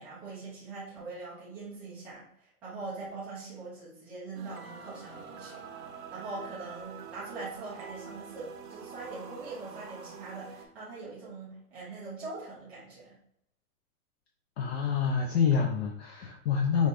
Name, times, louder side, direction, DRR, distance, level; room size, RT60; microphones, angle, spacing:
voice 1, 0.0-5.6 6.1-13.2, right 3 dB, 5° right, -10 dB, 0.3 m, -42 dB
sound 1, 4.3-10.7, right 6 dB, 85° right, 1.0 m, -46 dB
voice 2, 14.6-16.9, left 6 dB, 45° left, 2 dB, 0.6 m, -27 dB
5.2 x 2.5 x 3.2 m, 0.74 s
hypercardioid pair, 135°, 44 cm